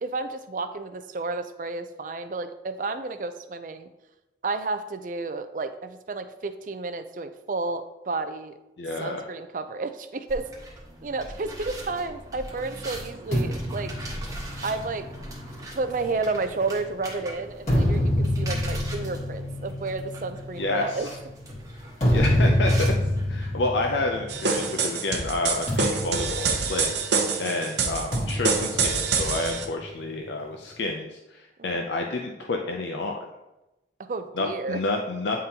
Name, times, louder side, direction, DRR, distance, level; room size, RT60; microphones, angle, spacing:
voice 1, 0.0-3.9 4.4-8.5 9.0-10.5 11.0-13.9 14.6-15.0 15.7-21.1 31.6-31.8 34.0-34.8, right 3 dB, 45° right, 9 dB, 0.4 m, -31 dB
voice 2, 8.8-9.2 20.6-21.0 22.1-22.9 23.3-33.2 34.4-35.4, left 2 dB, 80° left, 2 dB, 0.5 m, -29 dB
sound 1, 10.3-23.5, right 1 dB, 20° right, 1.0 m, -40 dB
sound 2, 13.3-16.9 17.4-24.8 25.1-25.3 25.7-27.3 28.1-29.9, left 1 dB, 40° left, 1.8 m, -27 dB
sound 3, 24.3-29.7, right 5 dB, 75° right, 0.7 m, -26 dB
9.2 x 3.7 x 2.8 m, 0.98 s
head